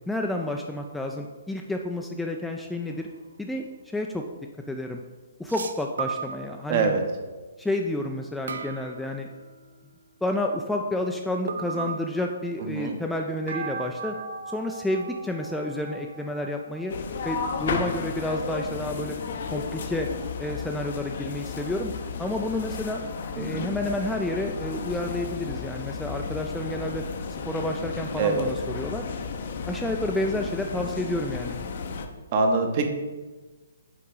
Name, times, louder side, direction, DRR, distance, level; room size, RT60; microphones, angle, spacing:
voice 1, 0.1-3.1 3.4-4.2 4.7-5.0 5.4-7.0 7.6-9.3 10.2-14.1 14.5-16.9 17.2-19.2 19.5-20.1 20.4-21.9 22.2-23.0 23.4-27.0 27.5-29.0 29.7-31.6, left 1 dB, 5° left, 2 dB, 0.3 m, -30 dB
sound 1, 2.9-3.2 5.5-7.0 8.5-9.7 11.5-12.7 13.5-18.1, right 5 dB, 60° right, 0.5 m, -37 dB
voice 2, 6.7-7.0 12.7-13.0 23.4-23.7 28.2-28.4 32.3-32.9, right 4 dB, 35° right, 5 dB, 0.8 m, -24 dB
sound 2, 16.9-32.1, left 5 dB, 50° left, 0.6 m, -33 dB
6.4 x 4.6 x 3.8 m, 1.2 s
figure-of-eight pair, 130°, 0 cm